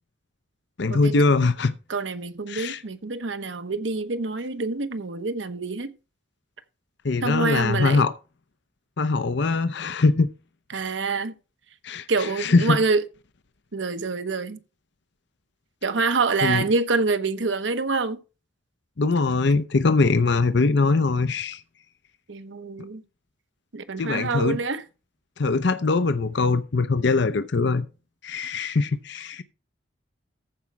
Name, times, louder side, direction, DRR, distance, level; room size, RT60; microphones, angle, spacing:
voice 1, 0.8-1.7 2.5-2.8 7.0-8.1 9.0-10.3 11.8-12.1 12.4-12.8 16.4-16.6 19.0-21.6 24.0-24.6 25.4-27.9 28.2-29.4, left 3 dB, 65° left, 0.7 m, -22 dB
voice 2, 1.9-5.9 7.2-8.0 10.7-11.3 12.1-13.0 13.7-14.6 15.8-18.2 22.3-23.0 23.7-24.8, right 4 dB, 75° right, 1.0 m, -26 dB
14.5 x 5.2 x 4.6 m
head